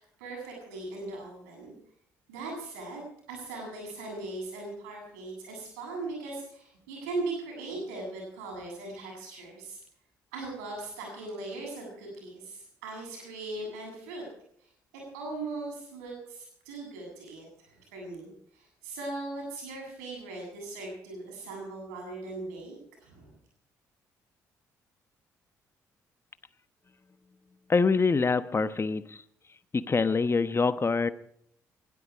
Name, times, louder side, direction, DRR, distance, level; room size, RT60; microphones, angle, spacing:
voice 1, 0.0-1.7 2.3-9.8 10.3-14.2 15.1-22.7 23.0-23.3, right 2 dB, 85° right, 0 dB, 7.8 m, -39 dB
voice 2, 27.7-29.2 29.7-31.1, left 4 dB, 30° left, 12 dB, 1.0 m, -25 dB
20.0 x 12.5 x 5.0 m, 0.69 s
hypercardioid pair, 50°, 8 cm